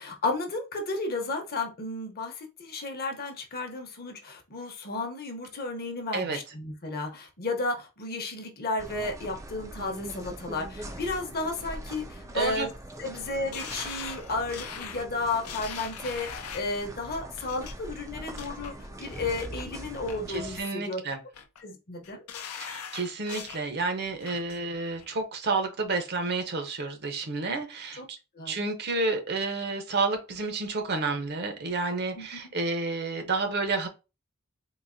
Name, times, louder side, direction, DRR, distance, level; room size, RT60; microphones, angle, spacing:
voice 1, 0.0-12.7 13.0-21.0 21.6-22.2 28.0-28.1 28.3-28.6 32.2-32.4, left 3 dB, 45° left, 4 dB, 0.8 m, -33 dB
sound 1, 8.8-20.6, right 1 dB, 15° right, 0.3 m, -42 dB
voice 2, 12.3-12.7 20.3-21.2 22.6-28.2 28.5-33.9, right 3 dB, 50° right, 6 dB, 0.7 m, -30 dB
sound 2, 13.5-16.8 17.4-17.7 18.1-18.7 19.1-19.7 20.1-20.7 21.1-21.6 22.0-23.6 24.0-24.6 25.0-25.1, left 7 dB, 80° left, 0.5 m, -41 dB
3.9 x 2.5 x 2.5 m, 0.28 s
head